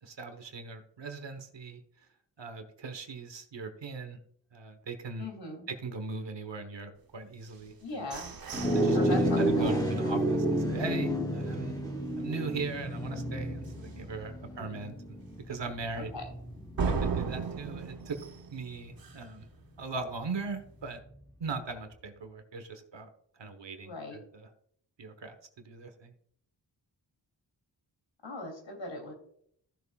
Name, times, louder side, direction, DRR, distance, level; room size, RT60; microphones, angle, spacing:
voice 1, 0.0-1.8 2.4-4.2 4.5-5.3 5.7-8.1 8.7-11.7 12.2-15.2 15.5-16.1 16.8-18.2 18.5-19.5 19.8-21.0 21.4-23.1 23.4-24.5 25.0-26.1, right 4 dB, 75° right, 8 dB, 1.2 m, -39 dB
voice 2, 5.2-5.6 7.8-8.4 8.9-10.2 14.4-14.7 15.9-16.3 23.8-24.2 28.2-29.1, left 2 dB, 80° left, 2 dB, 3.0 m, -40 dB
sound 1, 7.5-11.4 11.8-11.9 12.3-12.7 13.1-13.2 13.7-13.8 16.8-19.4, right 5 dB, 55° right, 0.9 m, -37 dB
sound 2, 8.5-18.1, right 1 dB, 10° left, 2.9 m, -31 dB
15.0 x 6.9 x 2.4 m, 0.66 s
wide cardioid pair, 100°, 43 cm